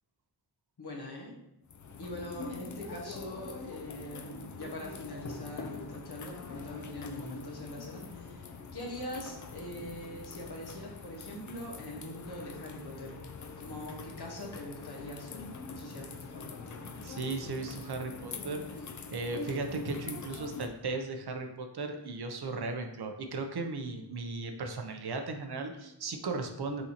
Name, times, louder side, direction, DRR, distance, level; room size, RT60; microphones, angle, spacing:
voice 1, 0.8-1.3 2.0-13.2 13.6-16.7, left 1 dB, 65° left, -2 dB, 1.3 m, -43 dB
sound 1, 1.7-20.7, left 4 dB, 45° left, 0.5 m, -44 dB
voice 2, 17.0-18.6 19.1-26.8, right 3 dB, 65° right, 5 dB, 0.7 m, -36 dB
5.7 x 2.7 x 2.9 m, 0.84 s
cardioid pair, 40°, 42 cm